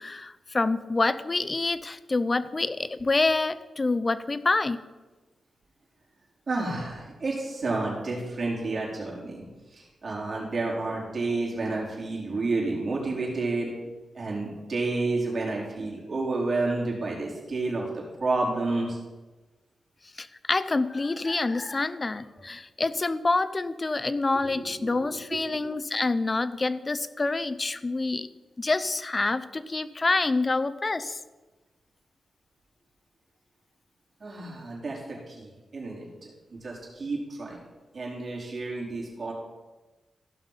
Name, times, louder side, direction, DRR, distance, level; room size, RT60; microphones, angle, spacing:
voice 1, 0.0-4.8 20.2-28.3 28.6-31.2, left 3 dB, 30° left, 13 dB, 0.6 m, -27 dB
voice 2, 6.5-9.4 9.7-13.7 14.1-17.9 18.2-19.0 24.5-25.4 34.2-37.6 37.9-39.3, right 3 dB, 50° right, -4 dB, 4.4 m, -30 dB
15.5 x 5.8 x 5.7 m, 1.2 s
cardioid pair, 80°, 0 cm